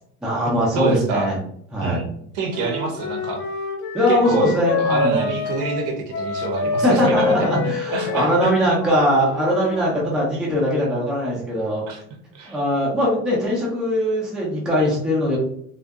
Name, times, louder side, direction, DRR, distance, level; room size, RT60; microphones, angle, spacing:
voice 1, 0.2-1.4 1.7-2.0 3.9-5.3 6.8-11.8 12.5-15.4, equal, ahead, -6 dB, 0.4 m, -21 dB
voice 2, 0.7-1.3 1.8-2.1 2.3-3.4 4.1-4.5 4.8-7.4 7.9-8.5 11.9-12.0 12.3-12.6, right 3 dB, 55° right, 2 dB, 0.7 m, -26 dB
Wind instrument woodwind instrument, 2.5-9.9, left 3 dB, 85° left, 0.5 m, -27 dB
2.6 x 2.2 x 2.3 m, 0.66 s
cardioid pair, 170°, 30 cm